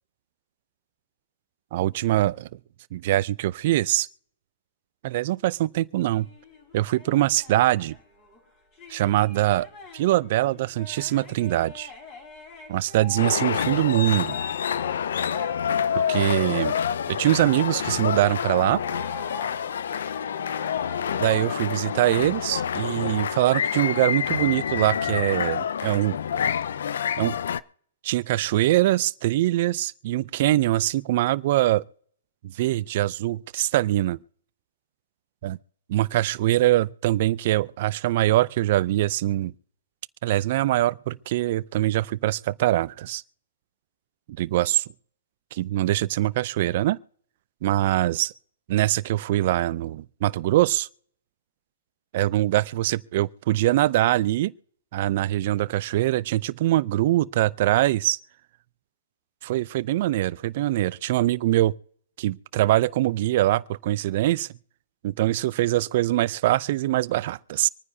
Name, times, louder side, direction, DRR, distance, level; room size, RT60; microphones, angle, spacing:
voice 1, 1.7-2.5 2.9-4.1 5.0-6.3 6.7-8.0 8.9-9.7 9.9-11.9 12.7-14.4 15.9-16.7 17.1-18.8 21.2-26.2 27.2-27.4 28.0-31.8 32.4-34.2 35.4-35.6 35.9-39.5 40.2-43.2 44.4-44.8 45.5-47.0 47.6-48.3 48.7-50.9 52.1-54.5 54.9-58.2 59.4-61.7 62.2-64.5 65.0-67.7, right 15 dB, 50° right, 0.5 m, -23 dB
sound 1, 6.1-13.9 14.3-23.2, left 2 dB, 30° left, 4.7 m, -45 dB
sound 2, 13.2-27.6, left 8 dB, 75° left, 0.5 m, -27 dB
25.5 x 9.7 x 2.8 m
hypercardioid pair, 140°, 0 cm